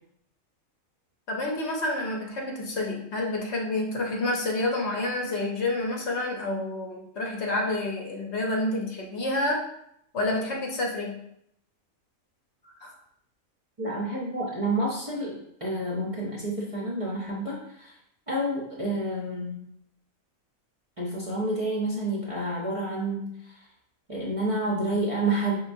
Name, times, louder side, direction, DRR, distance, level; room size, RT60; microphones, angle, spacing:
voice 1, 1.3-9.6 10.1-11.2 12.8-12.9, left 2 dB, 60° left, -1 dB, 1.0 m, -29 dB
voice 2, 13.8-17.9 18.3-19.6 21.0-23.6 24.1-25.6, right 1 dB, 35° right, -5 dB, 0.6 m, -29 dB
5.4 x 3.2 x 2.6 m, 0.73 s
omnidirectional pair, 1.4 m